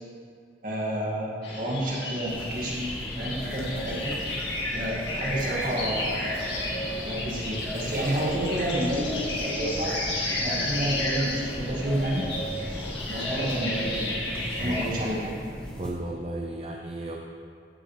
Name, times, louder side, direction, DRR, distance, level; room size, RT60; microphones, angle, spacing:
voice 1, 0.6-4.2 4.7-6.2 7.0-10.0 10.4-12.3 13.1-14.1 14.6-15.3, right 1 dB, 50° right, -4 dB, 2.2 m, -30 dB
sound 1, 1.4-14.8, left 1 dB, 90° left, 2.1 m, -32 dB
sound 2, 2.3-15.9, equal, 5° left, 1.4 m, -38 dB
voice 2, 15.8-17.2, right 2 dB, 35° right, 0 dB, 0.6 m, -34 dB
15.0 x 7.5 x 3.4 m, 2.3 s
head